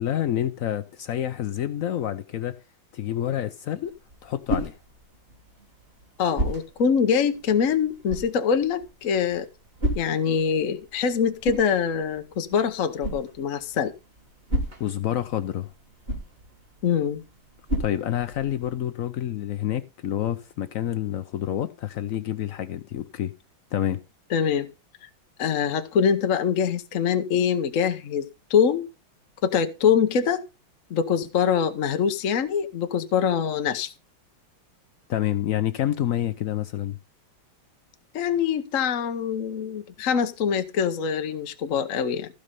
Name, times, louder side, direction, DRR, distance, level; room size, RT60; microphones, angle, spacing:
voice 1, 0.0-2.6 2.9-4.0 4.2-4.8 14.8-15.7 17.8-23.3 23.7-24.0 35.1-37.0, left 11 dB, 80° left, 0.7 m, -28 dB
sound 1, 3.8-18.7, right 1 dB, 25° right, 3.8 m, -35 dB
voice 2, 6.2-9.5 10.0-13.9 16.8-17.2 24.3-24.7 25.0-25.1 25.4-28.9 29.4-30.4 30.9-33.9 38.1-42.3, left 7 dB, 55° left, 1.0 m, -24 dB
15.5 x 5.4 x 5.3 m
omnidirectional pair, 2.2 m